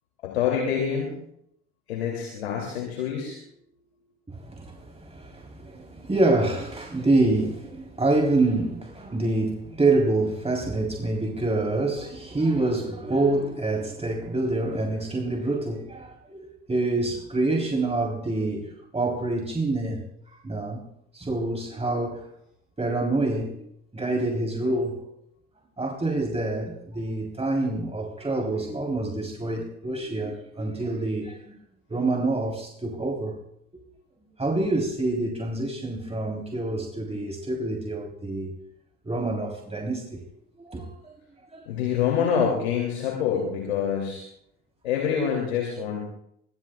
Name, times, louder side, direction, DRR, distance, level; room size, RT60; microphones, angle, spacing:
voice 1, 0.2-1.1 1.9-3.4 41.7-44.3 44.8-46.0, left 7 dB, 85° left, 2.9 m, -26 dB
voice 2, 4.3-20.8 21.1-22.3 22.8-23.6 23.9-25.1 25.8-31.5 31.9-33.4 33.7-33.8 34.4-38.5 39.0-40.2 40.6-41.1 41.5-41.7, right 2 dB, 20° right, 3.7 m, -27 dB
24.0 x 23.0 x 2.4 m
hypercardioid pair, 50°, 31 cm